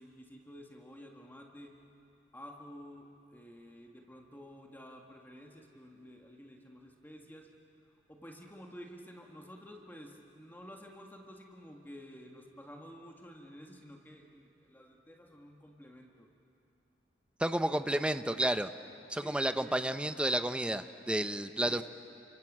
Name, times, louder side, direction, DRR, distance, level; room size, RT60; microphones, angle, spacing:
voice 1, 0.0-1.8 2.3-7.5 8.1-16.3 17.6-18.1 19.2-19.9 21.6-21.8, equal, 10° left, 1 dB, 1.7 m, -51 dB
voice 2, 17.4-18.7 19.1-21.8, right 1 dB, 5° right, 9 dB, 0.7 m, -31 dB
29.0 x 25.5 x 7.4 m, 2.8 s
head